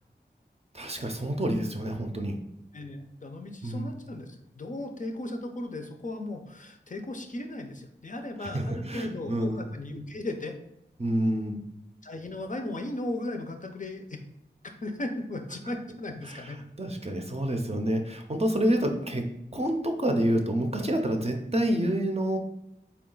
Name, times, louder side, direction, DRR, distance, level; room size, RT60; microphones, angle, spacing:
voice 1, 0.7-2.4 3.6-4.0 8.4-9.7 11.0-11.6 16.2-22.4, right 1 dB, 35° right, 4 dB, 0.5 m, -28 dB
voice 2, 2.7-10.5 12.0-14.2 14.6-16.6, left 2 dB, 45° left, 4 dB, 0.5 m, -36 dB
3.8 x 2.3 x 3.7 m, 0.83 s
wide cardioid pair, 45°, 19 cm